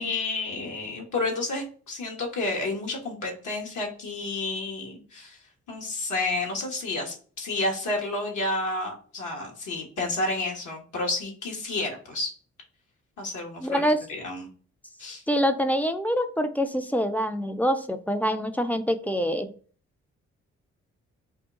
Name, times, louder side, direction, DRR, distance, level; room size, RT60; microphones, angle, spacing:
voice 1, 0.0-5.4 5.7-12.3 13.2-14.5 15.0-15.2, left 2 dB, 70° left, 0 dB, 1.2 m, -30 dB
voice 2, 13.6-14.0 15.3-19.5, equal, 5° left, 8 dB, 0.4 m, -25 dB
2.6 x 2.3 x 3.7 m, 0.41 s
supercardioid pair, 45°, 32 cm